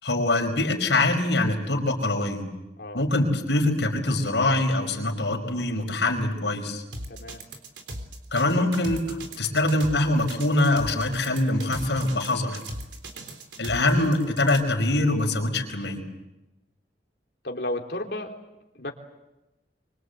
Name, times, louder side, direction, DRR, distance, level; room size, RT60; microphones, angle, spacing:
voice 1, 0.0-2.4 2.9-6.8 8.3-12.6 13.6-16.0, left 2 dB, 80° left, 3 dB, 5.2 m, -24 dB
sound 1, 6.9-14.6, right 1 dB, 85° right, 3.7 m, -38 dB
voice 2, 7.1-7.4 17.4-18.4 18.8-18.9, left 1 dB, 65° left, 1 dB, 3.3 m, -32 dB
25.0 x 24.5 x 8.1 m, 0.99 s
head